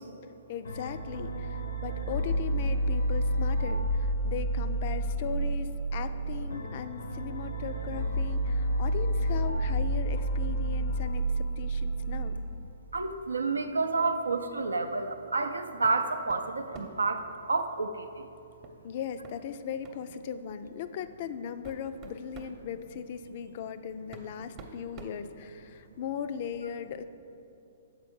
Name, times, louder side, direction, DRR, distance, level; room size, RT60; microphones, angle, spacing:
voice 1, 0.5-12.4 18.8-27.0, left 8 dB, 50° left, 11 dB, 0.3 m, -38 dB
sound 1, 0.6-12.4, right 1 dB, 85° left, 0.8 m, -30 dB
voice 2, 12.9-17.2 17.5-17.9, right 3 dB, 85° right, 8 dB, 0.4 m, -29 dB
sound 2, 15.8-16.0 16.3-17.1 18.6-18.8 19.2-19.4 19.8-20.0 20.9-21.0 21.4-22.6 23.6-23.7 24.1-25.9, right 4 dB, 30° right, 0.8 m, -48 dB
6.6 x 4.4 x 5.3 m, 2.8 s
hypercardioid pair, 125°, 0 cm